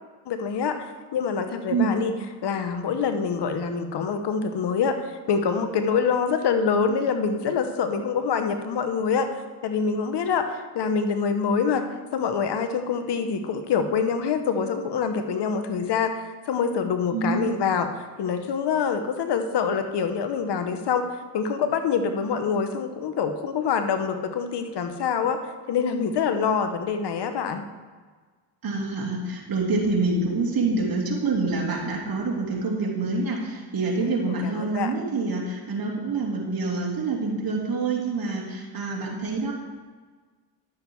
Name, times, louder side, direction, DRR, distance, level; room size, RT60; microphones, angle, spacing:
voice 1, 0.3-2.1 2.4-11.8 12.1-17.9 18.2-21.0 21.3-25.4 25.7-27.7 34.2-34.3 34.6-34.9, left 6 dB, 60° left, 7 dB, 1.1 m, -25 dB
voice 2, 17.1-17.6 28.6-39.5, right 3 dB, 50° right, -1 dB, 2.9 m, -26 dB
11.5 x 7.2 x 4.7 m, 1.4 s
supercardioid pair, 65°, 46 cm